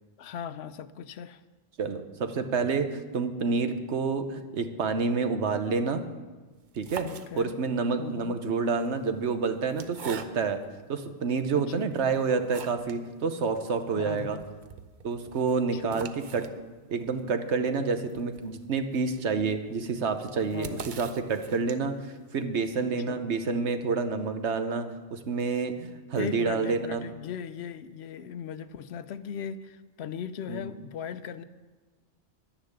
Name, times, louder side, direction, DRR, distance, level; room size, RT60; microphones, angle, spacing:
voice 1, 0.2-1.4 7.0-7.5 8.0-8.4 11.5-11.9 14.0-14.5 15.7-16.2 20.5-20.9 22.8-23.2 26.1-31.4, left 8 dB, 75° left, 13 dB, 0.8 m, -38 dB
voice 2, 1.8-6.0 6.7-7.1 7.4-10.6 10.9-14.4 15.0-16.4 16.9-27.0 30.5-30.6, right 4 dB, 80° right, 8 dB, 1.2 m, -28 dB
sound 1, 6.6-7.8 8.7-10.7 11.3-11.4 11.9-13.1 13.4-13.5 13.7-13.8 14.2-22.1, right 6 dB, 50° right, 0.7 m, -45 dB
11.0 x 10.0 x 6.7 m, 1.3 s
omnidirectional pair, 1.1 m